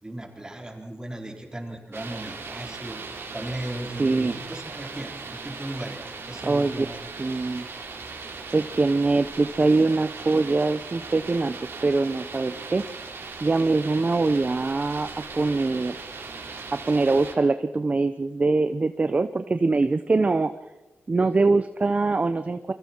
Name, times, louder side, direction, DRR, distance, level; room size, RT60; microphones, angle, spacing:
voice 1, 0.0-3.0 3.3-5.1 5.4-6.0 6.3-7.1, right 1 dB, 20° right, 1 dB, 4.4 m, -36 dB
sound 1, 1.9-17.3, right 4 dB, 80° right, 4.0 m, -38 dB
voice 2, 4.0-4.4 6.5-6.9 7.2-7.7 8.5-11.5 11.8-12.8 13.4-15.9 16.7-20.5 21.1-22.7, right 3 dB, 35° right, 11 dB, 0.8 m, -23 dB
29.0 x 23.5 x 4.5 m, 1.1 s
wide cardioid pair, 100°, 4 cm